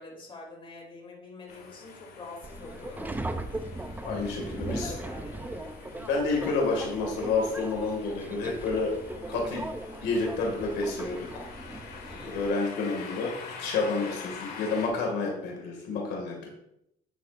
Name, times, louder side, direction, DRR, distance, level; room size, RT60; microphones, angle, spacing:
voice 1, 0.0-3.2 4.6-5.6 12.1-12.5 14.2-14.4, left 3 dB, 30° left, -1 dB, 2.8 m, -45 dB
sound 1, 1.5-14.9, left 5 dB, 65° left, 1.8 m, -46 dB
Subway metro underground, 2.4-12.5, right 2 dB, 10° right, 0.6 m, -38 dB
voice 2, 4.0-4.9 6.0-8.9 9.3-9.6 10.0-11.4 12.2-13.3 13.6-16.5, left 3 dB, 80° left, 0 dB, 2.1 m, -29 dB
9.6 x 7.4 x 2.5 m, 0.80 s
cardioid pair, 110°, 17 cm